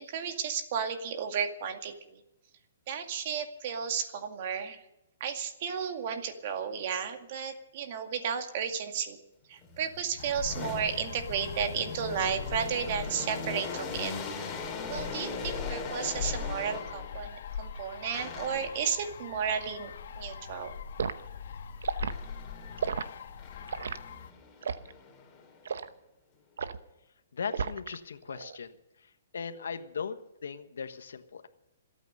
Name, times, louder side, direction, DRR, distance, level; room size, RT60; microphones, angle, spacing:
voice 1, 0.0-2.2 2.9-4.8 5.2-9.2 9.5-14.2 14.5-14.6 14.9-20.7, right 7 dB, 45° right, 6 dB, 2.1 m, -33 dB
sound 1, 9.6-17.2 18.1-18.9 22.1-22.9 23.4-25.8, left 4 dB, 20° left, 3.6 m, -41 dB
sound 2, 10.2-24.3, left 7 dB, 65° left, 1.8 m, -41 dB
Liquid, 21.0-21.2 21.8-22.2 22.8-23.1 23.7-24.0 24.6-24.9 25.6-25.9 26.6-26.8 27.5-27.9 28.3-28.6, right 6 dB, 80° right, 0.9 m, -33 dB
voice 2, 27.3-28.7 29.3-31.5, left 6 dB, 80° left, 10 dB, 1.3 m, -38 dB
27.0 x 9.1 x 5.6 m, 0.91 s
hypercardioid pair, 150°, 0 cm